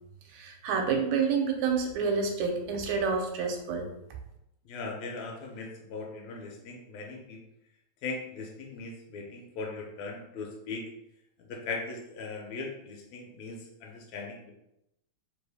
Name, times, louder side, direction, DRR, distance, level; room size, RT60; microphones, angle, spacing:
voice 1, 0.3-3.9, right 5 dB, 80° right, 2 dB, 1.9 m, -28 dB
voice 2, 4.7-7.4 8.0-10.9 11.4-14.5, left 3 dB, 75° left, 0 dB, 1.9 m, -39 dB
4.5 x 2.6 x 3.3 m, 0.82 s
omnidirectional pair, 3.3 m